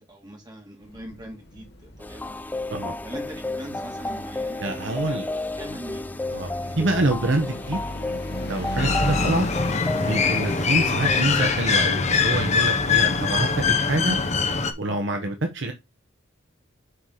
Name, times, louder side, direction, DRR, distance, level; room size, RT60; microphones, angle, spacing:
voice 1, 0.0-2.3 3.0-6.2 6.6-7.2, equal, 20° right, 2.8 m, -42 dB
sound 1, 0.8-10.3, left 1 dB, 55° left, 1.7 m, -35 dB
sound 2, 2.0-11.5, left 2 dB, 10° left, 0.3 m, -32 dB
voice 2, 4.6-5.3 6.3-6.5 6.8-7.8 8.5-9.5 10.0-14.2 14.8-15.7, right 2 dB, 60° right, 1.1 m, -26 dB
sound 3, 8.8-14.7, left 5 dB, 35° left, 0.9 m, -23 dB
6.9 x 4.8 x 3.9 m
head